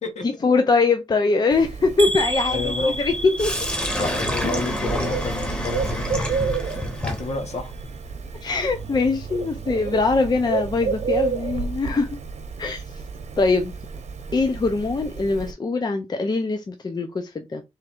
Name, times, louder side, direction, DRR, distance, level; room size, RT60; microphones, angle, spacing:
voice 1, 0.2-3.5 8.4-12.1 12.6-12.8 13.4-13.7 14.3-17.6, left 3 dB, 35° left, 0.5 m, -22 dB
Bird, 1.5-15.5, right 5 dB, 70° right, 0.9 m, -31 dB
sound 1, 2.0-6.0 6.3-6.9 7.3-7.5 7.8-7.9, right 1 dB, 50° right, 0.4 m, -32 dB
voice 2, 2.5-3.0 4.0-6.2 6.6-7.7, left 3 dB, 65° left, 1.3 m, -30 dB
Sink (filling or washing), 3.4-11.3, left 1 dB, 10° left, 0.9 m, -30 dB
3.6 x 3.1 x 4.5 m
wide cardioid pair, 160°, 12 cm